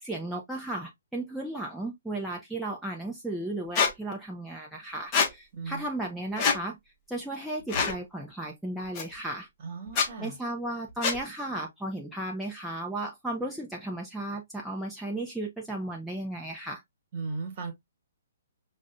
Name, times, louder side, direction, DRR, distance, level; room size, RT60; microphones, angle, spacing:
voice 1, 0.0-6.8 7.1-9.5 10.2-16.8, right 1 dB, ahead, 0.7 m, -35 dB
Squeak, 3.8-3.9 5.1-5.3 6.4-6.6 7.7-8.0 9.0-9.1 9.9-10.1 11.0-11.2, left 6 dB, 25° left, 0.9 m, -24 dB
voice 2, 9.6-10.4 17.1-17.7, right 4 dB, 35° right, 1.4 m, -36 dB
6.0 x 2.3 x 2.6 m
figure-of-eight pair, 125°, 0 cm